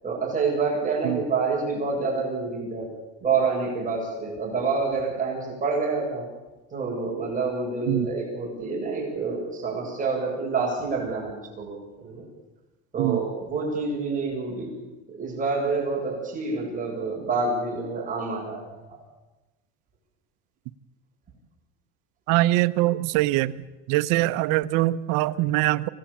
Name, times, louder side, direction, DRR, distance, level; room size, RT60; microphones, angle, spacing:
voice 1, 0.0-2.9 3.2-6.3 6.7-12.2 12.9-14.7 15.1-19.0, right 4 dB, 25° right, -2 dB, 7.9 m, -27 dB
voice 2, 22.3-23.5 23.9-25.9, right 17 dB, 80° right, 14 dB, 1.0 m, -23 dB
25.5 x 19.0 x 8.7 m, 1.1 s
cardioid pair, 140°, 31 cm